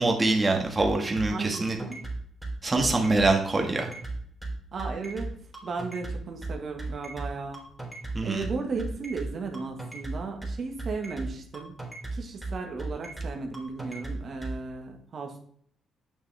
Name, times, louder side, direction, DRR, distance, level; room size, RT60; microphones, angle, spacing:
voice 1, 0.0-1.8 2.6-3.9 8.1-8.4, right 2 dB, 25° right, 2 dB, 1.6 m, -24 dB
sound 1, 0.8-14.6, right 2 dB, ahead, 3.6 m, -35 dB
voice 2, 1.3-2.0 4.7-5.3 5.6-7.6 8.2-11.7 12.1-15.4, right 4 dB, 50° right, 3 dB, 1.6 m, -35 dB
9.0 x 6.2 x 3.4 m, 0.62 s
cardioid pair, 90°, 0 cm